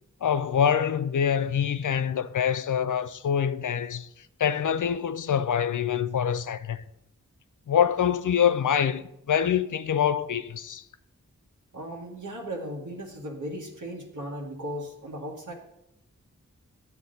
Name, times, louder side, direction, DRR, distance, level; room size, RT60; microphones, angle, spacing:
voice 1, 0.2-4.1 4.4-6.8 7.7-10.8, left 8 dB, 70° left, 0.5 m, -25 dB
voice 2, 11.7-15.5, equal, 75° right, 1.4 m, -36 dB
9.7 x 7.1 x 3.9 m
wide cardioid pair, 45°, 32 cm